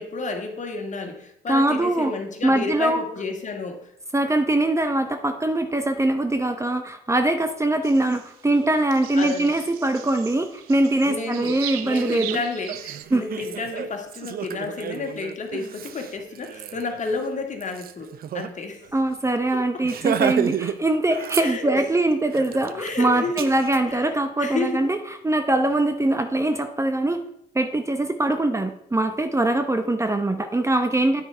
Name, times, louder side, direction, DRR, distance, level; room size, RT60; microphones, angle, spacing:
voice 1, 0.0-3.9 9.2-9.5 11.0-18.8 19.5-19.8 21.4-21.8 22.7-23.4 23.9-24.0 24.4-24.8, left 3 dB, 40° left, 4 dB, 2.0 m, -31 dB
voice 2, 1.5-2.1 2.4-3.0 4.1-12.4 13.1-13.2 18.9-27.2 27.5-31.2, right 1 dB, 15° right, 8 dB, 0.9 m, -22 dB
sound 1, 7.8-13.1, right 12 dB, 90° right, 0.5 m, -38 dB
Laughter, 11.4-11.5 11.9-18.5 18.8-18.9 19.2-19.4 19.8-20.8 21.1-21.9 22.3-23.8, right 9 dB, 55° right, 0.7 m, -32 dB
9.4 x 6.3 x 4.5 m, 0.77 s
hypercardioid pair, 60°, 18 cm